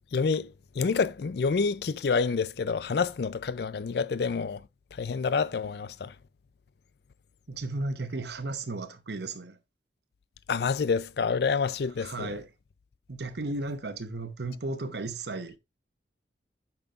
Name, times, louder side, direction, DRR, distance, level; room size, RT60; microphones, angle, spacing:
voice 1, 0.1-4.6 5.0-6.1 10.5-12.3, left 5 dB, 60° left, 0.4 m, -28 dB
voice 2, 7.5-9.6 12.0-12.5 13.1-15.6, right 2 dB, 65° right, 0.9 m, -34 dB
8.7 x 5.9 x 2.4 m
head